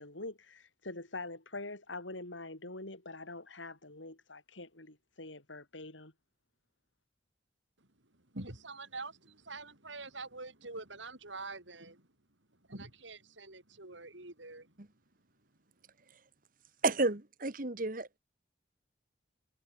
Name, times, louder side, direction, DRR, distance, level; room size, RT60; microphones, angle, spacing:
voice 1, 0.0-6.1, left 2 dB, 85° left, 5.3 m, -45 dB
voice 2, 8.1-12.1 12.7-14.7, right 3 dB, 80° right, 5.9 m, -46 dB
voice 3, 16.8-18.2, right 2 dB, 45° right, 1.6 m, -31 dB
head